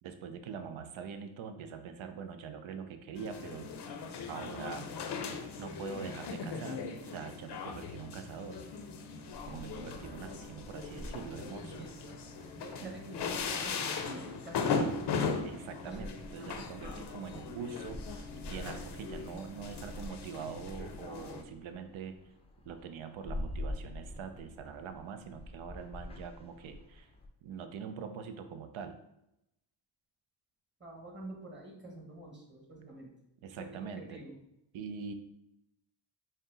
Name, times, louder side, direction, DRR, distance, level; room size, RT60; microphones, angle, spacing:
voice 1, 0.0-3.7 4.3-4.9 5.6-8.6 9.5-11.9 12.8-12.9 15.4-22.2 22.7-27.1 27.4-29.0 33.4-34.2 34.7-35.1, right 6 dB, 80° right, 8 dB, 0.6 m, -43 dB
sound 1, 3.1-21.4, left 5 dB, 60° left, 0.6 m, -39 dB
sound 2, 9.3-27.3, left 1 dB, 15° left, 0.4 m, -47 dB
voice 2, 11.6-12.2 12.6-14.9 15.8-16.5 30.8-33.1 33.6-34.4, right 1 dB, 25° right, 0 dB, 1.1 m, -48 dB
4.1 x 2.1 x 3.8 m, 0.85 s
cardioid pair, 70°, 47 cm